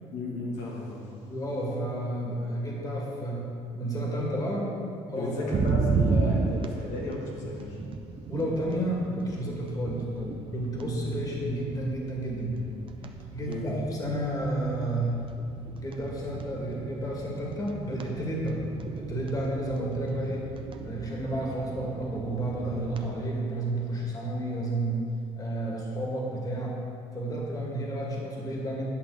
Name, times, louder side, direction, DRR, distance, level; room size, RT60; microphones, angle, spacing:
voice 1, 0.1-1.1 5.2-7.8 13.5-13.7 25.7-25.8, left 2 dB, 90° left, -3 dB, 1.8 m, -34 dB
voice 2, 1.2-3.5 3.7-4.7 5.1-5.5 8.3-12.6 13.3-15.2 15.8-18.6 19.0-20.5 20.8-25.0 25.4-26.8 27.1-28.9, right 1 dB, 30° left, -2 dB, 2.1 m, -31 dB
sound 1, 5.5-23.1, right 4 dB, 45° right, 0.7 m, -34 dB
10.5 x 5.9 x 4.9 m, 2.4 s
cardioid pair, 105°, 12 cm